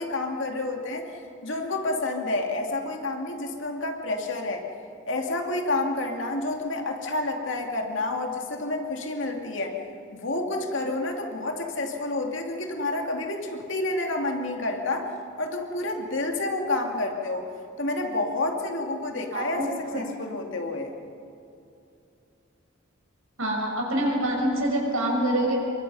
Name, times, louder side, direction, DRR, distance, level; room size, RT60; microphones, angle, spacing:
voice 1, 0.0-4.6 5.0-9.8 10.1-15.1 15.4-17.5 17.8-19.6 19.9-20.9, left 2 dB, 65° left, 2 dB, 2.5 m, -29 dB
voice 2, 19.3-19.7 19.9-20.0 23.4-25.6, right 1 dB, 90° right, 0 dB, 6.0 m, -25 dB
28.5 x 23.0 x 5.5 m, 2.6 s
head